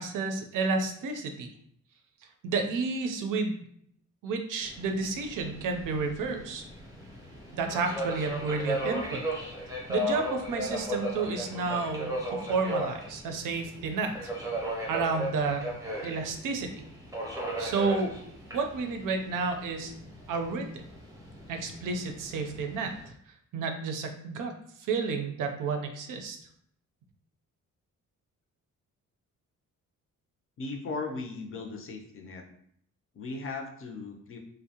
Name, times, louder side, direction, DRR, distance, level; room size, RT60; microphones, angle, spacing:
voice 1, 0.0-1.5 2.4-3.7 4.2-6.6 7.5-9.2 9.9-12.2 12.5-14.1 14.9-15.6 16.0-16.8 17.6-18.2 18.5-19.9 20.3-20.8 21.5-23.2 23.5-24.5 24.8-26.4, right 4 dB, 85° right, 5 dB, 0.5 m, -31 dB
Subway metro underground, 4.6-23.1, equal, 10° right, 0.6 m, -36 dB
voice 2, 30.6-32.4 33.1-34.4, left 3 dB, 45° left, 3 dB, 0.4 m, -37 dB
2.6 x 2.0 x 2.7 m, 0.66 s
wide cardioid pair, 145°, 31 cm